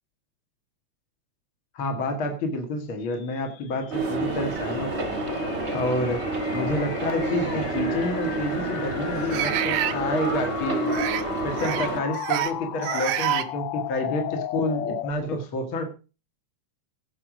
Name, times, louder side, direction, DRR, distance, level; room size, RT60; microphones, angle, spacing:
voice 1, 1.7-5.2 5.7-6.2 6.5-10.9 11.4-15.8, left 2 dB, 45° left, 5 dB, 2.4 m, -29 dB
sound 1, 3.2-15.1, left 12 dB, 75° left, 1.3 m, -36 dB
sound 2, 3.9-12.0, right 2 dB, 30° right, 1.5 m, -29 dB
sound 3, 4.5-4.6 5.3-5.5 7.1-7.2 9.3-10.0 10.9-11.2 11.6-11.9 12.1-12.5 12.8-13.5, right 13 dB, 70° right, 2.2 m, -27 dB
17.0 x 6.2 x 6.2 m, 0.34 s
omnidirectional pair, 3.5 m